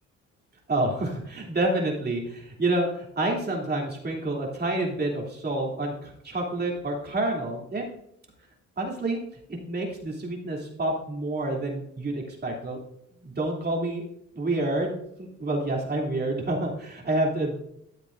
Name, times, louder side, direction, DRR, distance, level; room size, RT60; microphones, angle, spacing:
voice 1, 0.7-7.9 8.8-9.2 9.5-12.8 13.2-14.0 14.3-17.5, right 2 dB, 35° right, -1 dB, 2.9 m, -28 dB
13.0 x 7.5 x 2.6 m, 0.74 s
cardioid pair, 90°, 30 cm